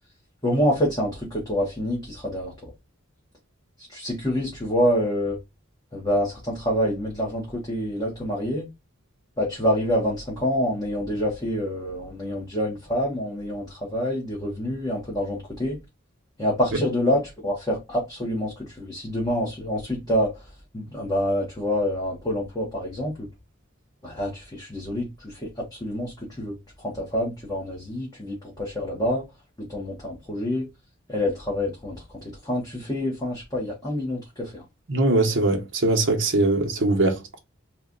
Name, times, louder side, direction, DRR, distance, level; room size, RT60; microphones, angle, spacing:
voice 1, 0.4-2.5 3.9-5.4 5.9-8.7 9.4-15.8 16.4-20.3 20.7-23.3 24.0-29.2 29.7-30.7 31.1-32.0 32.4-34.6, equal, 20° left, 1.2 m, -27 dB
voice 2, 34.9-37.4, right 2 dB, 60° right, 1.0 m, -21 dB
3.1 x 2.4 x 3.8 m
head